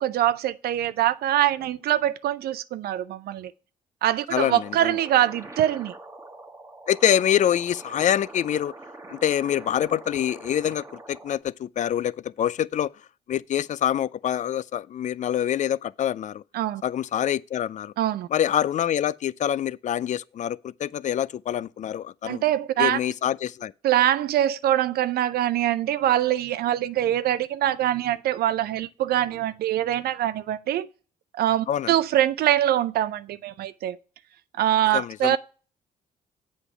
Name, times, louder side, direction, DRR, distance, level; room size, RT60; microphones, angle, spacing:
voice 1, 0.0-3.5 4.0-5.9 16.5-16.8 18.0-18.3 22.2-23.0 23.8-30.9 31.3-34.0 34.6-35.4, right 12 dB, 60° right, 0.5 m, -23 dB
voice 2, 4.3-5.0 6.9-8.7 9.1-12.9 13.3-16.4 16.8-17.9 18.3-22.4 22.8-23.7 31.7-31.9 34.9-35.4, left 10 dB, 45° left, 0.4 m, -25 dB
sound 1, 4.4-11.4, right 2 dB, 15° right, 1.3 m, -44 dB
8.0 x 5.1 x 5.5 m
hypercardioid pair, 50°, 18 cm